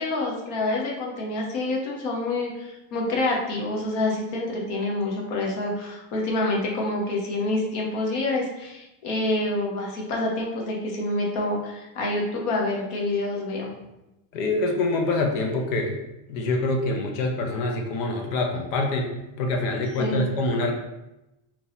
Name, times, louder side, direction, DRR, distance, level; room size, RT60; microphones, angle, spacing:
voice 1, 0.0-13.7 20.0-20.3, left 2 dB, 55° left, -1 dB, 1.1 m, -27 dB
voice 2, 14.3-16.0 16.3-19.1 19.4-20.7, left 2 dB, 70° left, 2 dB, 0.8 m, -25 dB
3.7 x 3.0 x 4.0 m, 0.93 s
cardioid pair, 175°, 41 cm